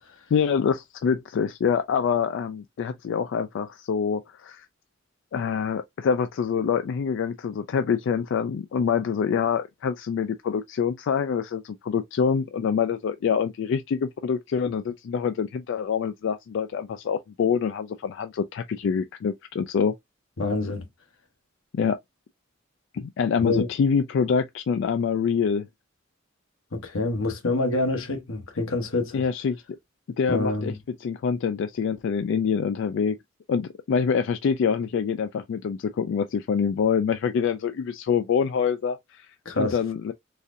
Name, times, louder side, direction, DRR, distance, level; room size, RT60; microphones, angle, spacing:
voice 1, 0.3-4.7 5.3-19.9 21.7-22.0 22.9-25.7 29.1-29.6 30.2-33.2 33.5-40.1, left 6 dB, 65° left, 0.3 m, -25 dB
voice 2, 20.4-20.9 23.4-23.7 26.7-29.2 30.3-30.8 39.4-39.8, left 2 dB, 90° left, 1.0 m, -26 dB
4.0 x 2.5 x 2.4 m
head